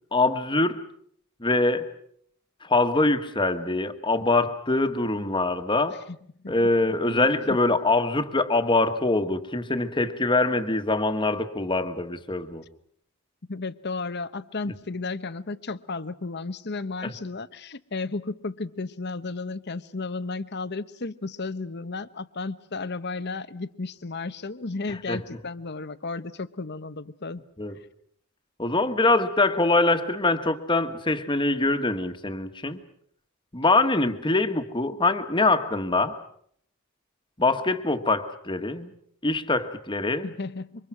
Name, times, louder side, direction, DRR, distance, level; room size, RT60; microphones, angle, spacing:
voice 1, 0.1-0.8 1.4-1.9 2.6-6.0 6.5-12.6 17.0-17.1 25.1-25.2 27.6-27.7 28.6-32.8 33.5-36.2 37.4-38.9 39.2-40.3, left 2 dB, 25° left, 1.6 m, -24 dB
voice 2, 13.5-27.4 40.2-40.9, left 3 dB, 55° left, 1.0 m, -33 dB
27.5 x 25.0 x 6.1 m
head